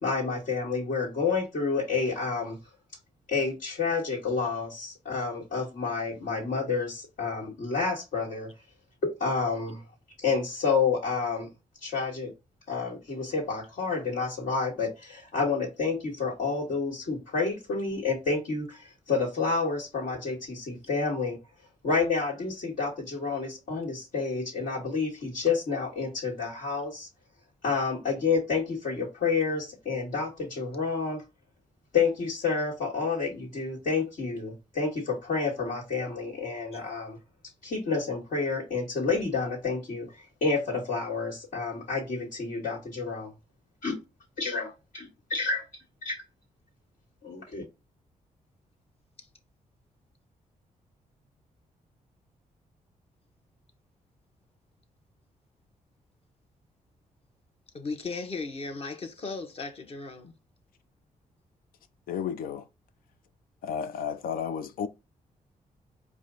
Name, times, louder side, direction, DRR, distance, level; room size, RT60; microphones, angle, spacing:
voice 1, 0.0-2.6 3.3-8.5 9.0-9.8 10.2-11.5 11.8-12.3 12.7-21.4 21.8-27.1 27.6-31.2 31.9-37.2 37.6-43.3 43.8-44.0 44.4-45.7 46.0-46.2 47.2-47.7, left 4 dB, 75° left, 1.8 m, -29 dB
voice 2, 57.7-60.3, left 4 dB, 45° left, 1.0 m, -36 dB
voice 3, 62.1-62.6 63.6-64.9, left 7 dB, 90° left, 0.6 m, -32 dB
4.9 x 2.3 x 3.8 m
cardioid pair, 100°, 14 cm